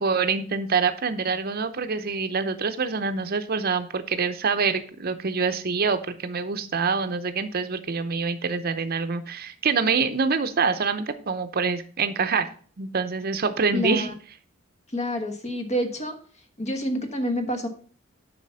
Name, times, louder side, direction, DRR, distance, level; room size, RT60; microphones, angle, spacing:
voice 1, 0.0-12.5 12.8-14.1, right 5 dB, 50° right, 9 dB, 0.7 m, -25 dB
voice 2, 13.7-14.1 14.9-16.1 16.6-17.7, equal, 35° left, 6 dB, 1.3 m, -28 dB
7.5 x 5.6 x 5.6 m, 0.43 s
head